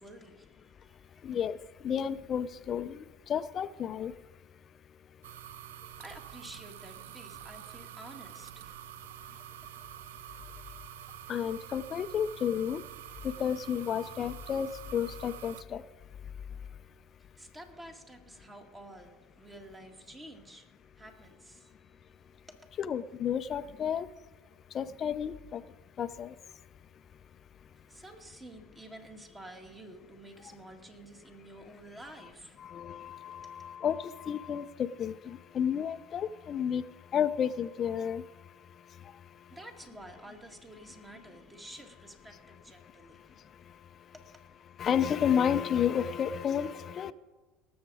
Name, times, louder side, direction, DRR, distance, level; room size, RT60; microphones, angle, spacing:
voice 1, 0.0-1.4 5.8-9.9 17.2-22.8 27.8-33.1 33.4-33.5 39.5-44.5, right 1 dB, 15° right, 2.1 m, -51 dB
voice 2, 1.2-1.6 1.8-3.0 3.3-4.1 11.3-12.8 13.2-15.8 22.8-24.1 24.7-25.6 26.0-26.3 32.6-36.8 37.1-38.2 44.8-47.1, left 8 dB, 40° left, 0.5 m, -31 dB
sound 1, 5.2-15.6, right 13 dB, 85° right, 0.4 m, -47 dB
19.0 x 7.2 x 4.9 m
supercardioid pair, 95°, 0 cm